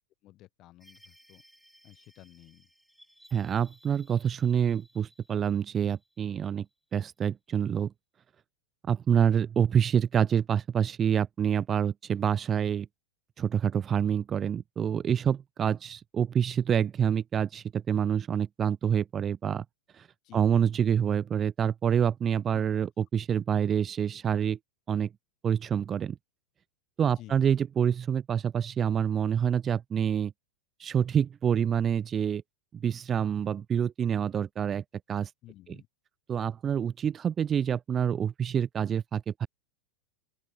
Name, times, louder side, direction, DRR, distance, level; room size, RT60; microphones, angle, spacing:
voice 1, 0.2-1.4 1.8-2.7 20.2-20.5 22.5-22.7 27.0-27.4 35.4-35.9, left 16 dB, 35° left, 7.0 m, -52 dB
sound 1, 0.8-7.1, equal, ahead, 2.7 m, -61 dB
voice 2, 3.3-6.7 6.9-7.9 8.9-12.9 13.4-19.6 20.0-20.1 20.3-22.9 23.1-24.6 24.9-25.1 25.4-26.2 27.0-30.3 30.8-32.4 32.7-34.8 35.1-35.3 36.3-39.5, right 8 dB, 25° right, 0.4 m, -27 dB
open air
figure-of-eight pair, 90°, 0 cm